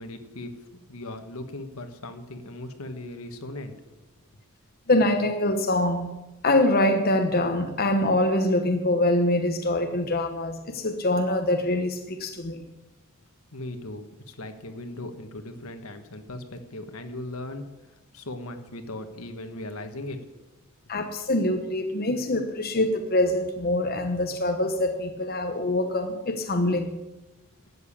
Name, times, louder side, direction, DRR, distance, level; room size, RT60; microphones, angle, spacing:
voice 1, 0.0-3.7 13.5-20.2, left 1 dB, 75° left, 7 dB, 1.5 m, -38 dB
voice 2, 4.9-6.1 6.4-12.7 20.9-26.9, left 1 dB, 45° left, 5 dB, 1.0 m, -24 dB
12.5 x 8.1 x 8.6 m, 1.0 s
head